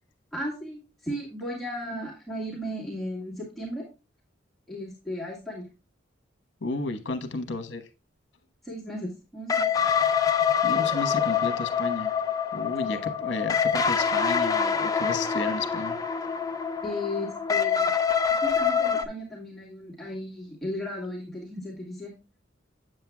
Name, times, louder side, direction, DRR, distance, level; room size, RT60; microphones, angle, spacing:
voice 1, 0.3-3.8 4.7-5.7 8.6-9.9 16.8-17.9 18.4-22.1, left 1 dB, ahead, -4 dB, 2.0 m, -35 dB
voice 2, 6.6-7.9 10.6-12.1 12.5-16.0, left 2 dB, 65° left, 8 dB, 1.1 m, -32 dB
sound 1, 9.5-19.0, left 7 dB, 20° left, 0.4 m, -25 dB
7.8 x 7.7 x 2.2 m, 0.30 s
head